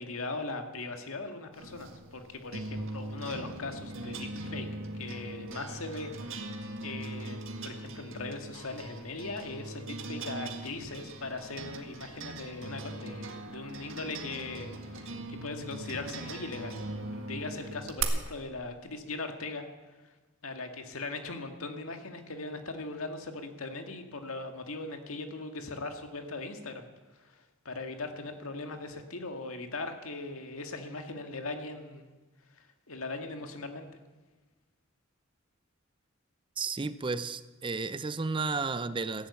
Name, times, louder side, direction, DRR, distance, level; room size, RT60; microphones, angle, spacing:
voice 1, 0.0-4.7 4.9-6.5 6.8-16.8 17.1-19.7 20.0-20.1 20.4-26.9 27.2-32.1 32.5-33.9, left 3 dB, 80° left, 1.9 m, -39 dB
sound 1, 1.6-18.0, right 2 dB, 65° right, 1.7 m, -40 dB
voice 2, 36.6-39.3, right 4 dB, 25° right, 0.5 m, -33 dB
15.0 x 11.0 x 8.3 m
head